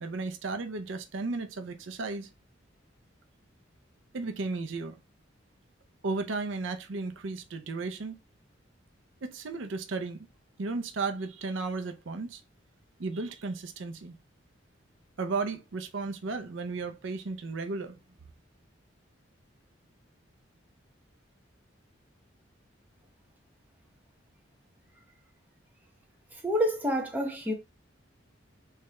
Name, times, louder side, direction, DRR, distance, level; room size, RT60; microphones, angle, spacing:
voice 1, 0.0-2.3 4.1-5.0 6.0-8.2 9.2-10.3 10.6-12.4 13.0-14.2 15.2-18.0, right 3 dB, 75° right, 0.5 m, -34 dB
voice 2, 26.4-27.5, equal, 10° right, 0.8 m, -28 dB
3.5 x 3.2 x 2.9 m
head